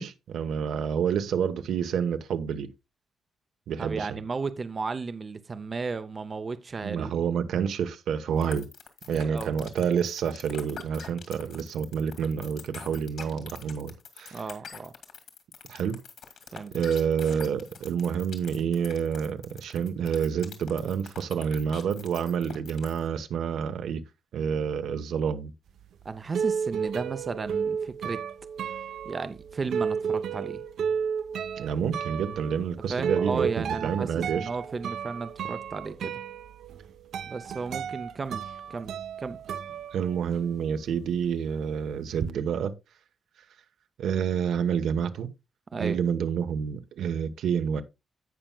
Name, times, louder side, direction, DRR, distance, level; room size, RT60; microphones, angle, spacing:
voice 1, 0.0-2.7 3.7-4.2 6.8-8.7 9.1-14.4 15.7-16.0 16.7-24.0 24.3-25.5 31.6-34.5 39.9-42.7 44.0-45.3 45.8-47.8, right 7 dB, 85° right, 1.0 m, -28 dB
voice 2, 3.8-7.2 9.1-9.5 14.3-14.9 16.5-16.7 17.3-17.4 26.0-28.2 29.0-30.6 32.9-36.2 37.3-38.9 39.2-39.4 45.7-46.0, right 4 dB, 25° right, 0.5 m, -34 dB
sound 1, 8.4-23.1, left 7 dB, 60° left, 2.1 m, -44 dB
sound 2, 25.8-40.6 40.9-42.3, right 7 dB, 70° right, 0.7 m, -33 dB
16.5 x 5.7 x 2.2 m
wide cardioid pair, 175°, 0 cm